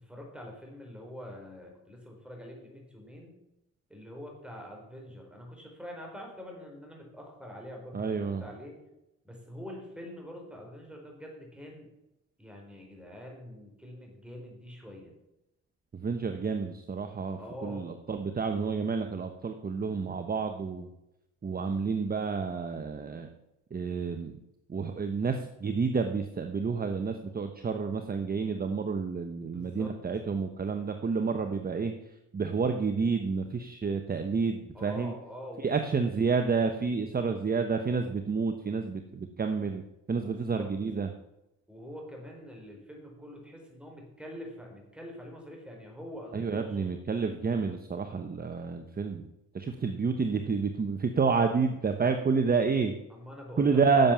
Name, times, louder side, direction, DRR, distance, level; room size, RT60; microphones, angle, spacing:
voice 1, 0.0-3.3 3.9-8.8 9.2-11.9 12.4-15.1 17.4-17.9 29.4-29.9 34.7-35.7 40.5-40.7 41.7-46.9 53.1-54.1, equal, 5° right, 0 dB, 4.6 m, -45 dB
voice 2, 7.9-8.4 15.9-20.9 21.4-23.3 23.7-24.4 24.7-31.9 32.3-35.1 35.6-39.8 40.1-41.1 46.3-49.2 49.5-52.9 53.6-54.1, right 5 dB, 30° right, 6 dB, 1.1 m, -29 dB
10.5 x 7.3 x 7.3 m, 0.91 s
cardioid pair, 90°, 30 cm